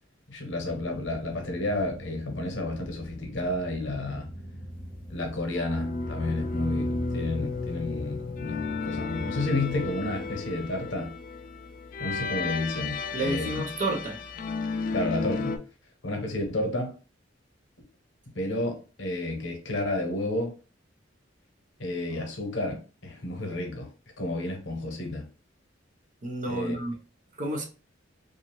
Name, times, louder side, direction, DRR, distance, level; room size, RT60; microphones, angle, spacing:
voice 1, 0.3-4.3 5.1-11.1 12.0-13.6 14.9-15.6 16.0-16.9 18.3-20.5 21.8-23.9 24.2-25.3 26.5-26.8, left 2 dB, 75° left, 0.9 m, -31 dB
sound 1, 0.6-10.4, equal, 5° left, 1.0 m, -44 dB
sound 2, 5.5-15.6, left 3 dB, 45° left, 0.3 m, -33 dB
voice 2, 13.1-14.2 26.2-27.0 27.4-27.6, right 2 dB, 40° right, 0.7 m, -30 dB
2.6 x 2.4 x 3.0 m
head